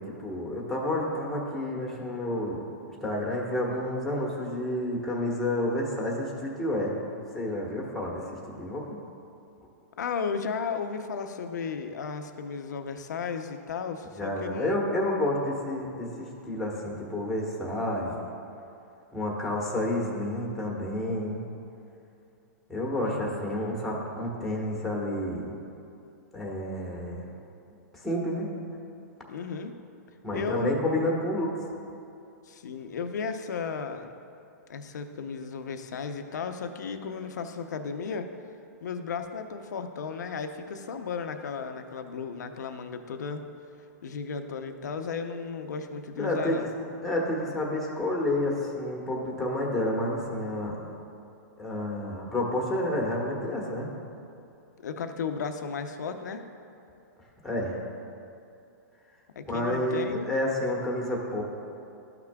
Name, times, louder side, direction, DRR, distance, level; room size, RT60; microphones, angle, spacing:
voice 1, 0.0-2.7 3.0-7.0 7.3-9.0 14.2-18.3 19.1-21.5 22.7-25.5 26.3-27.3 27.9-28.5 30.2-31.6 46.2-46.6 47.0-50.8 51.6-53.9 57.4-57.8 59.5-61.4, left 1 dB, ahead, -2 dB, 1.2 m, -30 dB
voice 2, 10.0-14.8 22.9-23.3 29.3-29.7 30.3-30.8 32.5-34.1 34.7-38.3 38.8-43.4 44.0-46.7 54.8-56.4 59.4-60.3, left 5 dB, 80° left, 7 dB, 0.6 m, -34 dB
13.0 x 5.9 x 2.3 m, 2.6 s
hypercardioid pair, 140°, 9 cm